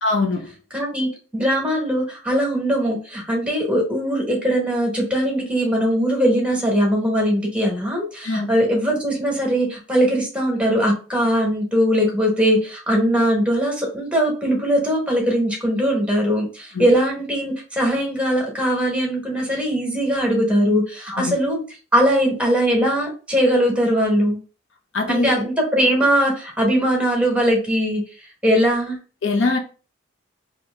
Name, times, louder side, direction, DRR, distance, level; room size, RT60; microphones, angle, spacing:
voice 1, 0.0-0.5 8.2-8.5 16.7-16.9 21.1-21.4 24.9-25.3 29.2-29.6, left 3 dB, 70° left, 0.6 m, -22 dB
voice 2, 0.7-21.6 21.9-24.4 25.1-28.0 28.4-29.0, equal, 5° right, 1.0 m, -20 dB
2.9 x 2.8 x 3.2 m
head